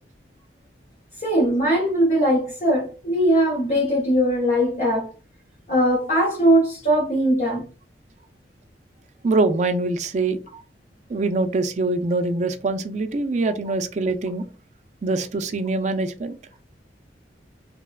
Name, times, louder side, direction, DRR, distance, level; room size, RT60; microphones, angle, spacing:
voice 1, 1.2-5.1 5.7-7.7, equal, 40° left, 0.7 m, -20 dB
voice 2, 9.2-10.4 11.1-14.4 15.0-16.4, right 3 dB, 40° right, 0.3 m, -23 dB
3.1 x 2.1 x 2.3 m
head